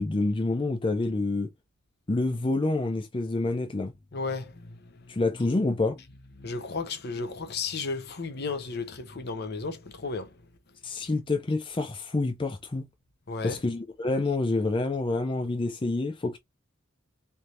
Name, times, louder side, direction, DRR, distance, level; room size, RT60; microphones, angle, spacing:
voice 1, 0.0-1.5 2.1-3.9 5.1-6.0 10.8-12.8 13.4-16.4, left 2 dB, 25° left, 0.5 m, -27 dB
voice 2, 4.1-5.2 6.4-10.4 13.3-13.6, left 4 dB, 50° left, 0.8 m, -34 dB
4.4 x 3.5 x 2.5 m
head